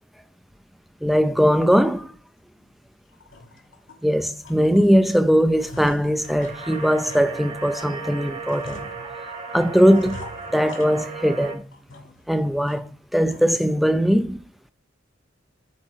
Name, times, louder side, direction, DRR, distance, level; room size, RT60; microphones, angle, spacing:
voice 1, 1.0-2.1 4.0-8.9 9.5-10.2 10.5-11.6 12.3-12.8 13.1-14.4, equal, ahead, 0.5 m, -20 dB
sound 1, 1.9-2.1 2.6-2.7 3.1-4.0 4.4-5.1 5.3-8.0 8.5-9.4 9.9-11.4 11.7-12.3 12.7-12.8 13.3-13.7, left 2 dB, 80° left, 1.4 m, -43 dB
sound 2, 6.2-11.6, right 5 dB, 35° right, 1.4 m, -36 dB
8.3 x 3.8 x 4.6 m
head